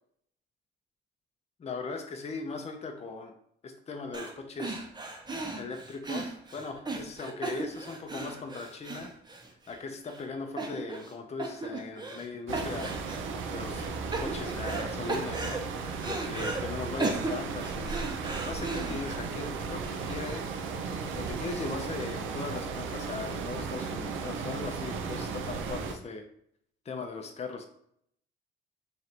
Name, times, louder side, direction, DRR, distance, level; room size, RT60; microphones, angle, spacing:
voice 1, 1.6-3.3 3.6-4.8 5.6-9.1 9.7-13.0 13.5-13.9 14.2-15.8 16.1-18.0 18.4-20.5 21.1-26.3 26.8-27.7, left 4 dB, 35° left, 5 dB, 0.6 m, -39 dB
sound 1, 4.1-4.3 4.6-9.8 10.1-10.2 10.6-11.1 11.4-12.3 12.5-13.3 13.7-14.8 15.1-16.6 17.0-19.1, right 3 dB, 20° right, 0.8 m, -36 dB
sound 2, 12.5-26.0, right 5 dB, 80° right, 0.6 m, -35 dB
3.1 x 2.6 x 4.3 m, 0.68 s
cardioid pair, 90°, 20 cm